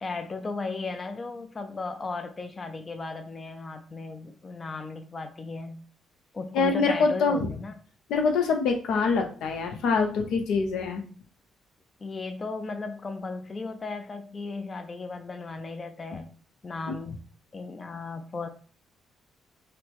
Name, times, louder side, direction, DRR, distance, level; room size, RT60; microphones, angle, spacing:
voice 1, 0.0-5.8 6.3-7.7 12.0-16.3 16.6-17.2 17.5-18.5, left 3 dB, 30° left, 7 dB, 0.4 m, -35 dB
voice 2, 6.5-7.5 8.1-11.0 16.1-16.2 16.9-17.0, left 4 dB, 80° left, 4 dB, 0.7 m, -25 dB
5.7 x 2.1 x 3.4 m, 0.42 s
cardioid pair, 90°, 0 cm